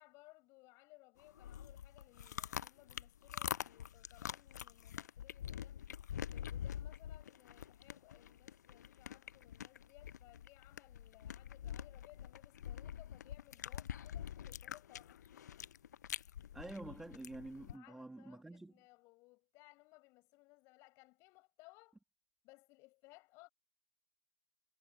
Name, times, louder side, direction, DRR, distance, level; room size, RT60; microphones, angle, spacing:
voice 1, 0.0-5.8 6.3-15.4 17.7-22.0 22.4-23.5, left 24 dB, 25° left, 6.5 m, -63 dB
sound 1, 1.2-17.8, left 9 dB, 55° left, 0.6 m, -46 dB
voice 2, 16.5-18.7, right 2 dB, 5° right, 1.4 m, -48 dB
hypercardioid pair, 145°, 11 cm